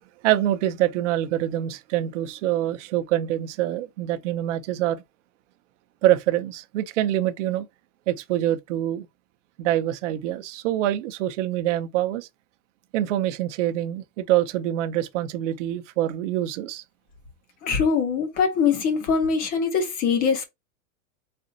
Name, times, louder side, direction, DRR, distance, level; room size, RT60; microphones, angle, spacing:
voice 1, 0.2-5.0 6.0-7.7 8.1-9.1 9.6-12.3 12.9-16.8, right 13 dB, 55° right, 0.7 m, -25 dB
voice 2, 17.6-20.4, left 5 dB, 20° left, 0.6 m, -22 dB
4.2 x 2.4 x 3.8 m
supercardioid pair, 165°, 43 cm